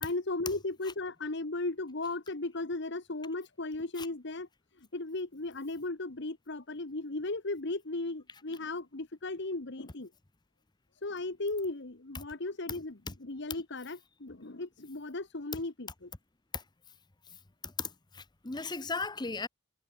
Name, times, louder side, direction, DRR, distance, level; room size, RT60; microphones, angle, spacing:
voice 1, 0.0-4.5 4.8-10.1 11.0-16.1, left 2 dB, 60° left, 1.4 m, -36 dB
voice 2, 17.6-19.5, left 4 dB, 20° left, 0.9 m, -36 dB
head